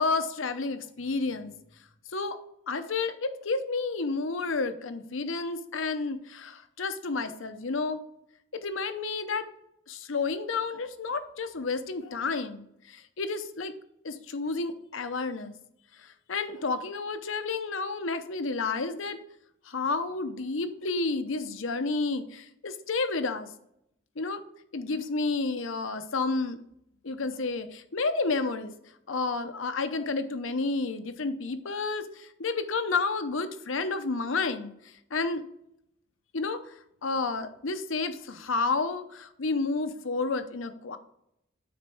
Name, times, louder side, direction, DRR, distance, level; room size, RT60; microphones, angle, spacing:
voice 1, 0.0-1.5 2.1-2.4 2.7-8.0 8.5-9.5 9.9-13.7 14.0-15.5 16.0-19.2 19.7-23.5 24.2-24.5 24.7-26.6 27.0-28.7 29.1-34.7 35.1-35.4 36.3-36.7 37.0-41.0, left 3 dB, 70° left, 9 dB, 0.8 m, -31 dB
9.4 x 4.4 x 4.4 m, 0.75 s
head